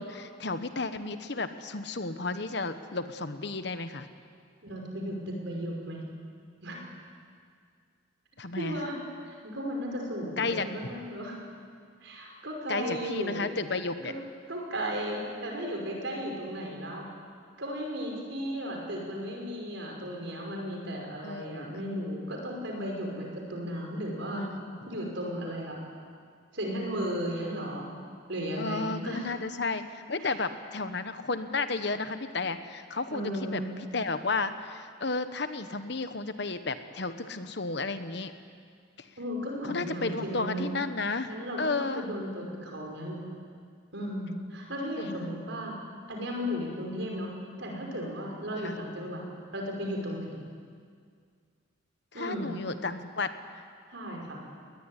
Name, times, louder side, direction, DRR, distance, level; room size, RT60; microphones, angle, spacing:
voice 1, 0.0-4.1 8.4-8.8 10.4-10.7 12.7-14.1 21.2-21.8 24.4-24.9 28.6-33.6 33.9-38.3 39.6-42.0 45.0-45.3 48.6-48.8 52.1-53.3, left 3 dB, 55° left, 10 dB, 1.2 m, -33 dB
voice 2, 4.6-6.0 6.6-6.8 8.6-9.0 9.3-11.4 12.0-13.5 14.0-14.1 14.5-17.1 17.6-24.4 24.9-25.8 26.5-27.9 28.3-29.3 30.2-30.4 33.1-33.7 39.2-40.8 41.2-43.2 43.9-45.8 46.1-47.3 47.6-49.2 49.5-50.4 52.1-52.5 53.9-54.4, equal, 65° right, 0 dB, 5.6 m, -35 dB
21.0 x 19.5 x 10.0 m, 2.1 s
head